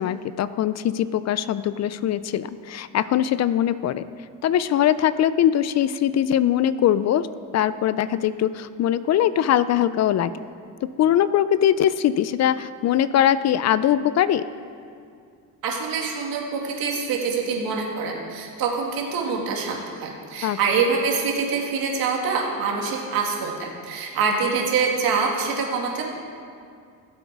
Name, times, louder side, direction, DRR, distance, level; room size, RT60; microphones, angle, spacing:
voice 1, 0.0-4.0 4.4-7.3 7.5-10.3 11.0-14.4 20.4-20.6, left 10 dB, 50° left, 15 dB, 0.5 m, -21 dB
voice 2, 15.6-26.0, right 5 dB, 75° right, 0 dB, 2.3 m, -25 dB
16.5 x 8.0 x 4.7 m, 2.3 s
cardioid pair, 105°, 35 cm